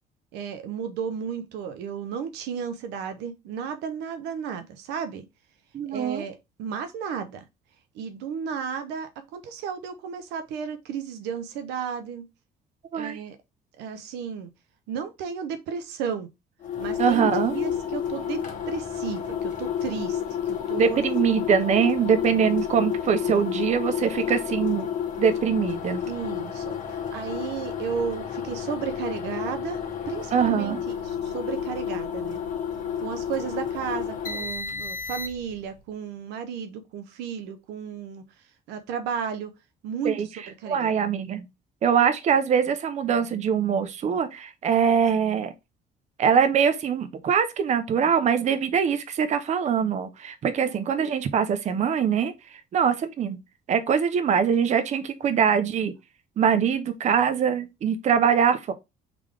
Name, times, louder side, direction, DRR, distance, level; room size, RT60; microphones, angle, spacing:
voice 1, 0.3-5.3 5.9-7.4 7.9-12.3 12.9-13.4 13.8-14.5 14.9-16.3 16.8-20.2 20.5-21.0 26.1-29.8 30.1-32.4 33.0-38.2 38.7-39.5 39.8-40.2 40.5-41.0 50.5-50.7, right 7 dB, 90° right, 0.7 m, -33 dB
voice 2, 5.7-6.2 12.9-13.2 17.0-17.5 20.8-24.9 25.2-26.0 30.3-30.8 40.0-40.3 40.7-41.5 41.8-45.5 46.2-52.3 52.7-53.4 53.7-55.9 56.4-58.7, right 7 dB, 45° right, 0.6 m, -23 dB
sound 1, 16.6-35.6, left 8 dB, 50° left, 1.3 m, -30 dB
3.7 x 3.4 x 3.3 m
cardioid pair, 110°, 17 cm